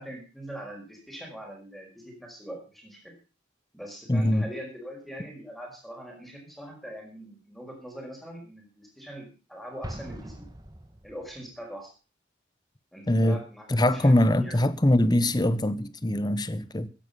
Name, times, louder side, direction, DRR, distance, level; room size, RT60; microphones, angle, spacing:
voice 1, 0.0-3.1 3.7-10.5 11.0-11.9 12.9-13.7 13.9-14.7, equal, ahead, 5.2 m, -42 dB
voice 2, 4.1-4.5 13.1-13.4 13.7-16.9, left 1 dB, 20° left, 0.9 m, -22 dB
Explosion, 9.8-11.5, right 1 dB, 20° right, 1.6 m, -42 dB
15.5 x 10.5 x 5.6 m
head